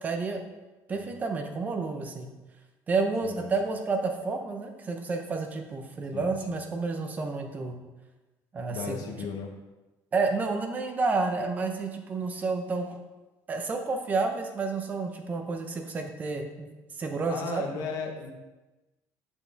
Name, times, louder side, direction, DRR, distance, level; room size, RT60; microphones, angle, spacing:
voice 1, 0.0-0.4 0.9-2.3 2.9-7.8 8.5-9.3 10.1-12.9 13.5-16.7 17.0-17.8, right 4 dB, 20° right, 5 dB, 0.7 m, -30 dB
voice 2, 6.1-6.6 8.7-9.5 17.3-18.3, left 5 dB, 55° left, 3 dB, 1.1 m, -36 dB
7.1 x 6.5 x 3.4 m, 1.1 s
cardioid pair, 175°, 7 cm